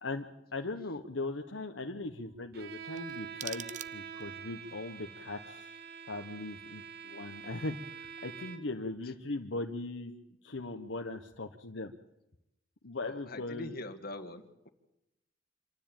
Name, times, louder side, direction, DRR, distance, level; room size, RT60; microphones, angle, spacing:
voice 1, 0.5-3.7 3.9-5.8 6.1-10.2 10.4-11.9 12.8-13.7, left 2 dB, 75° left, 4 dB, 1.1 m, -39 dB
Bowed string instrument, 2.5-8.9, right 7 dB, 60° right, 1.4 m, -46 dB
sound 1, 2.9-4.4, right 10 dB, 40° right, 0.7 m, -45 dB
voice 2, 13.0-14.7, left 2 dB, 50° left, 7 dB, 1.9 m, -43 dB
26.5 x 12.5 x 8.9 m, 0.91 s
head